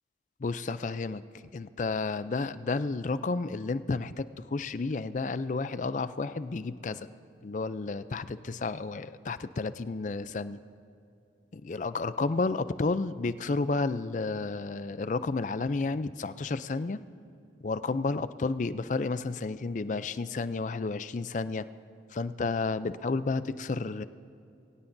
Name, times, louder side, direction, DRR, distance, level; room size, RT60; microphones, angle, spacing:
voice 1, 0.4-1.2 1.5-7.1 7.4-10.6 11.5-17.0 17.6-21.7 22.1-24.0, left 3 dB, 45° left, 14 dB, 0.4 m, -31 dB
23.0 x 17.0 x 2.7 m, 2.6 s
head